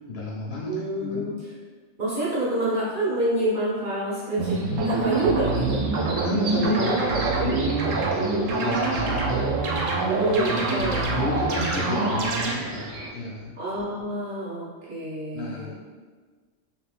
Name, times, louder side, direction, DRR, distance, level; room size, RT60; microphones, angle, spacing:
voice 1, 0.1-1.3 6.2-9.5 10.6-10.9 11.1-13.6 15.3-15.7, left 3 dB, 65° left, -5 dB, 0.8 m, -32 dB
voice 2, 0.7-1.5 2.0-4.6 4.8-5.8 10.0-11.1 13.6-15.7, right 1 dB, 45° right, -8 dB, 0.9 m, -27 dB
sound 1, 4.4-13.1, right 2 dB, 70° right, 0.4 m, -39 dB
sound 2, 4.4-12.5, right 3 dB, 85° right, 0.9 m, -25 dB
3.3 x 2.5 x 2.4 m, 1.4 s
omnidirectional pair, 1.3 m